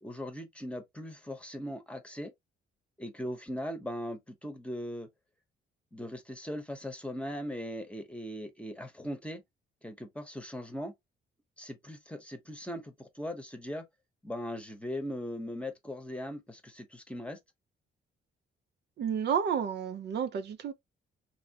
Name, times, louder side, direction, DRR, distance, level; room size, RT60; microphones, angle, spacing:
voice 1, 0.0-2.3 3.0-5.1 5.9-9.4 9.8-10.9 11.6-13.9 14.2-17.4, equal, 5° left, 0.9 m, -39 dB
voice 2, 19.0-20.7, right 7 dB, 60° right, 0.5 m, -31 dB
3.0 x 2.7 x 2.8 m
cardioid pair, 90°, 20 cm